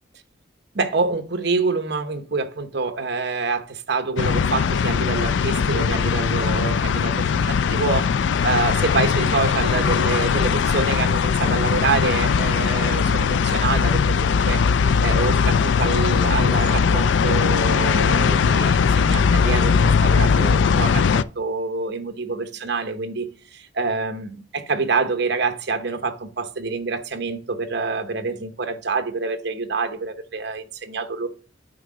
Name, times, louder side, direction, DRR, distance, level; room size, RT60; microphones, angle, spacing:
voice 1, 0.7-8.1 8.4-14.6 15.0-31.3, right 4 dB, 60° right, 1.0 m, -26 dB
sound 1, 4.2-21.2, left 6 dB, 70° left, 0.3 m, -20 dB
7.9 x 4.7 x 5.0 m
head